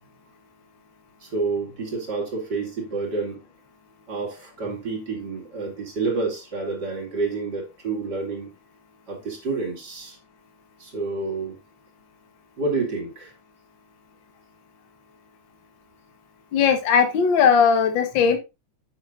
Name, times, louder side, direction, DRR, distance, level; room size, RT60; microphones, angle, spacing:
voice 1, 1.2-3.4 4.1-8.5 9.1-10.2 10.8-11.6 12.6-13.3, right 3 dB, 35° right, 2.5 m, -29 dB
voice 2, 16.5-18.4, left 6 dB, 50° left, 1.6 m, -18 dB
8.8 x 7.6 x 2.5 m
omnidirectional pair, 3.5 m